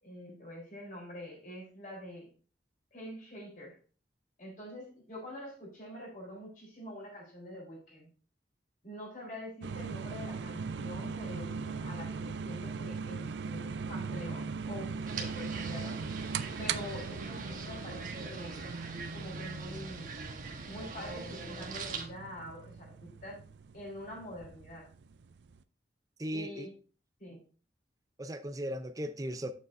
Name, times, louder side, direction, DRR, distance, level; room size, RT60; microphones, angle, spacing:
voice 1, 0.0-2.3 2.9-3.8 4.4-8.1 8.8-16.0 16.6-18.7 19.1-20.1 20.6-23.4 23.7-24.9 26.3-26.7 27.2-27.4, equal, 50° left, 3.9 m, -45 dB
sound 1, 9.6-25.6, right 5 dB, 80° right, 0.5 m, -40 dB
sound 2, 15.0-22.1, right 4 dB, 45° right, 1.2 m, -43 dB
voice 2, 26.2-26.7 28.2-29.5, equal, 20° right, 0.5 m, -37 dB
8.8 x 7.1 x 2.6 m
head